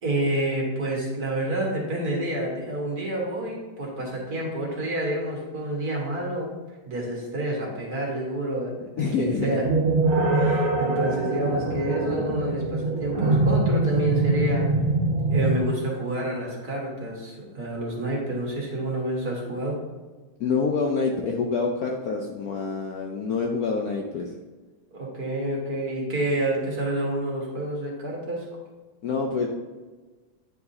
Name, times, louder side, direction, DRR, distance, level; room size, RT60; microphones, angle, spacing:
voice 1, 0.0-6.5 6.9-9.7 10.3-14.7 15.3-19.8 24.9-28.4, right 1 dB, 50° right, -3 dB, 1.9 m, -28 dB
voice 2, 9.0-9.6 10.4-10.7 20.4-24.3 29.0-29.5, left 4 dB, 80° left, 1 dB, 0.8 m, -26 dB
sound 1, 9.6-15.6, right 2 dB, 80° right, 1.7 m, -23 dB
9.4 x 4.7 x 2.7 m, 1.3 s
omnidirectional pair, 2.3 m